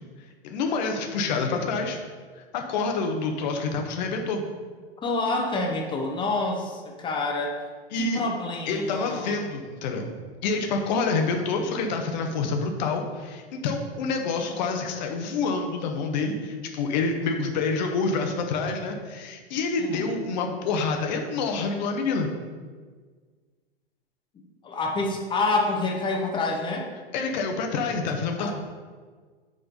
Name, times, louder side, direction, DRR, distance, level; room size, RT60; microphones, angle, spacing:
voice 1, 0.4-2.0 2.3-4.5 7.9-8.2 8.7-10.1 10.4-22.3 27.1-28.5, left 4 dB, 45° left, 3 dB, 1.1 m, -27 dB
voice 2, 5.0-7.6 7.9-9.4 19.8-20.1 24.3-26.9 28.4-28.5, left 3 dB, 15° left, 1 dB, 1.0 m, -28 dB
7.3 x 3.7 x 5.2 m, 1.5 s
figure-of-eight pair, 95°, 30 cm